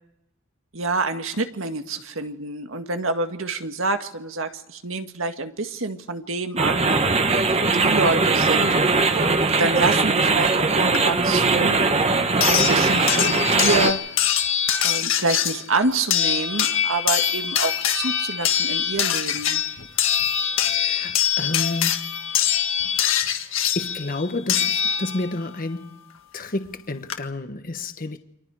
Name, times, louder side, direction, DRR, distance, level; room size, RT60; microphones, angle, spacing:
voice 1, 0.7-7.0 7.5-9.2 9.6-12.0 12.5-14.1 14.8-19.6, right 3 dB, 80° right, 1.9 m, -27 dB
sound 1, 6.6-13.9, right 3 dB, 30° right, 1.3 m, -20 dB
sound 2, 10.9-11.0 12.4-25.4 26.7-26.8 27.1-27.2, left 9 dB, 75° left, 1.7 m, -23 dB
voice 2, 20.6-22.2 23.7-26.0 26.3-28.2, left 2 dB, 45° left, 1.3 m, -30 dB
29.5 x 24.5 x 4.9 m
head